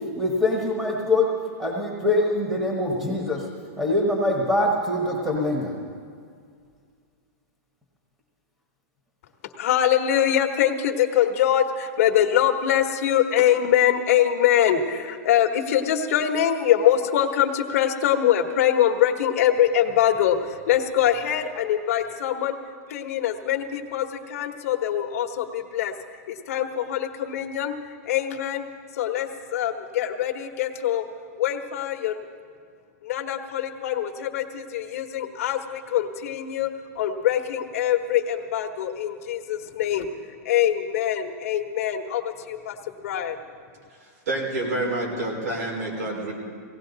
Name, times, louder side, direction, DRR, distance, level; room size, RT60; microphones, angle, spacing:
voice 1, 0.2-1.3 1.6-3.5 3.8-5.8, left 2 dB, 10° right, -2 dB, 1.3 m, -23 dB
voice 2, 9.6-22.5 22.9-25.9 26.3-28.6 28.9-31.0 31.4-32.3 33.0-36.7 36.9-40.1 40.4-42.8 43.0-43.4, left 10 dB, 60° left, 5 dB, 1.2 m, -23 dB
voice 3, 44.0-46.3, right 2 dB, 80° right, -1 dB, 4.7 m, -28 dB
17.5 x 17.5 x 4.0 m, 2.1 s
supercardioid pair, 165°, 9 cm